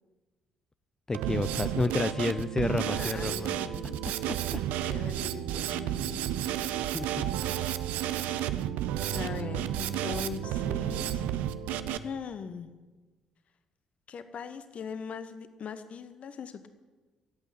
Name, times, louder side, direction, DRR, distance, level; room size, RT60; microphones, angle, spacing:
voice 1, 1.1-3.6 4.0-4.6 6.8-7.3, left 3 dB, 20° left, 12 dB, 0.4 m, -31 dB
Drum kit, 1.1-12.0, right 11 dB, 60° right, 0.6 m, -32 dB
voice 2, 2.9-4.0 4.8-6.2 9.1-11.2 12.0-12.7 14.1-16.7, left 6 dB, 45° left, 11 dB, 0.9 m, -40 dB
12.5 x 8.4 x 9.9 m, 1.3 s
figure-of-eight pair, 45°, 3 cm